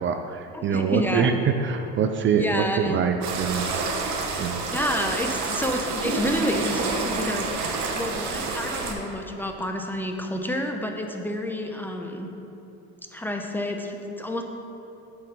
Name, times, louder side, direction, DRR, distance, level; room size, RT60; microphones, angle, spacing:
voice 1, 0.0-3.8 4.4-4.7, right 6 dB, 40° right, 6 dB, 0.4 m, -24 dB
voice 2, 0.5-1.3 2.4-3.0 4.7-7.5 7.9-12.3 13.1-14.4, left 1 dB, 5° left, 3 dB, 0.6 m, -29 dB
sound 1, 3.2-8.9, right 4 dB, 65° right, 1.1 m, -28 dB
7.0 x 4.7 x 6.6 m, 2.9 s
cardioid pair, 110°, 31 cm